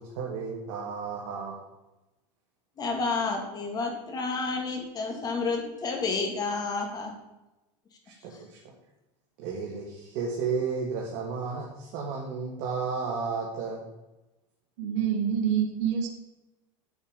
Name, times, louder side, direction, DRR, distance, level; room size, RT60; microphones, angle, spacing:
voice 1, 0.0-1.6 8.2-8.3 9.4-13.9, right 5 dB, 55° right, -2 dB, 1.9 m, -32 dB
voice 2, 2.8-7.1 8.3-8.4, left 4 dB, 25° left, 2 dB, 2.0 m, -30 dB
voice 3, 14.8-16.1, right 8 dB, 70° right, 2 dB, 1.6 m, -26 dB
8.4 x 7.1 x 5.2 m, 1.0 s
supercardioid pair, 145°, 16 cm